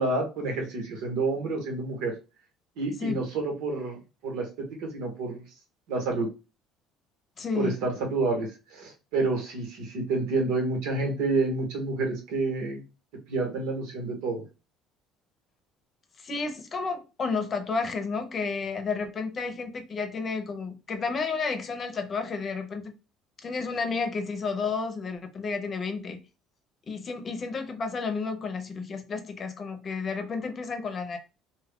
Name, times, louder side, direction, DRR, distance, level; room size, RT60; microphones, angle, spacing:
voice 1, 0.0-2.1 2.8-5.4 5.9-6.3 7.5-12.8 13.3-14.4, right 3 dB, 85° right, 1.3 m, -29 dB
voice 2, 7.4-7.8 16.2-22.9 23.4-26.2 26.9-31.2, left 4 dB, 35° left, 0.7 m, -31 dB
2.7 x 2.4 x 3.5 m
cardioid pair, 120°, 0 cm